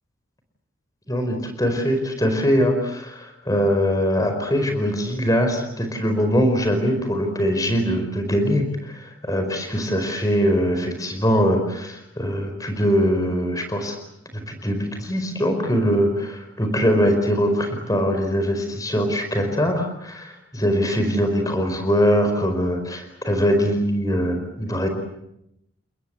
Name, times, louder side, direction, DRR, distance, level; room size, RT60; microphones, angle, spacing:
voice 1, 1.1-13.9 14.3-24.9, equal, 15° left, 6 dB, 4.8 m, -22 dB
30.0 x 21.0 x 8.2 m, 0.81 s
head